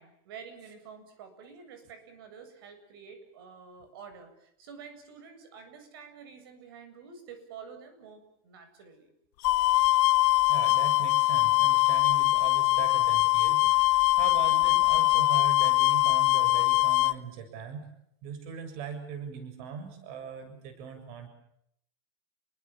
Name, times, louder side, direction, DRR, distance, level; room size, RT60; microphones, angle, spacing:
voice 1, 0.0-9.1, right 6 dB, 85° right, 9 dB, 7.6 m, -48 dB
sound 1, 9.4-17.1, left 20 dB, 55° left, 1.0 m, -23 dB
voice 2, 10.5-17.8 18.2-21.3, right 7 dB, 50° right, 9 dB, 7.2 m, -40 dB
30.0 x 23.5 x 7.3 m, 0.75 s
supercardioid pair, 175°, 12 cm